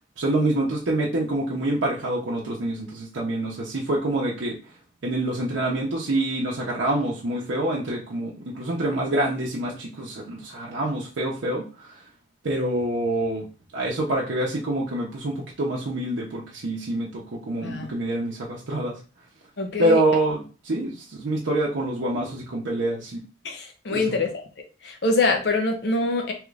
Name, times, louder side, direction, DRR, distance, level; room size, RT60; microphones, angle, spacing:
voice 1, 0.2-4.6 5.0-12.0 12.4-13.5 13.7-19.0 19.8-23.2 23.9-24.1, right 1 dB, 85° right, -4 dB, 0.7 m, -26 dB
voice 2, 19.6-20.0 23.4-24.3 24.8-26.3, left 3 dB, 60° left, 3 dB, 0.6 m, -24 dB
3.1 x 2.4 x 3.2 m, 0.34 s
head